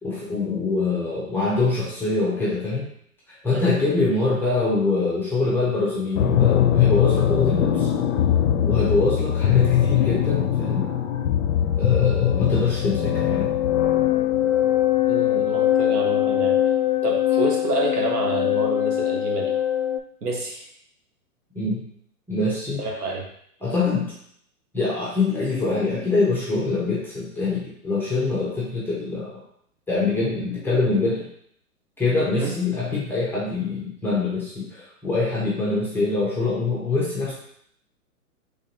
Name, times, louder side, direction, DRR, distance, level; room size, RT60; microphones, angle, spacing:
voice 1, 0.0-2.9 3.3-7.9 8.6-10.9 11.8-13.5 21.5-21.8 22.3-22.8 23.6-24.1 24.7-29.4 29.9-31.3 32.0-37.3, left 3 dB, 5° left, -8 dB, 0.6 m, -24 dB
sound 1, 6.2-20.0, left 10 dB, 60° left, 0.5 m, -21 dB
voice 2, 15.1-16.6 17.0-19.5 20.2-20.7 22.8-23.3 32.3-32.5, right 3 dB, 80° right, -1 dB, 1.4 m, -28 dB
3.8 x 3.4 x 2.9 m, 0.68 s
hypercardioid pair, 125°, 45 cm